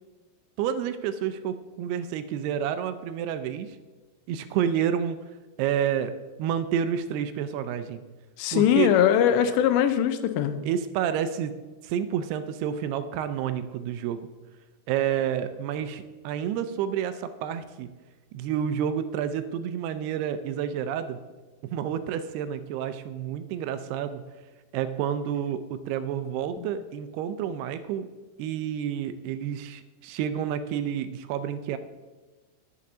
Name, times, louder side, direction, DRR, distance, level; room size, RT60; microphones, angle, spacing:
voice 1, 0.6-3.8 4.3-5.2 5.6-6.1 6.4-8.0 8.5-8.9 10.6-11.6 11.8-14.3 14.9-17.9 18.3-21.2 21.6-24.3 24.7-28.1 28.4-31.8, right 9 dB, 85° right, 11 dB, 2.3 m, -29 dB
voice 2, 8.4-10.6 26.6-26.7, left 10 dB, 85° left, 9 dB, 2.9 m, -21 dB
10.0 x 7.0 x 6.1 m, 1.3 s
omnidirectional pair, 5.0 m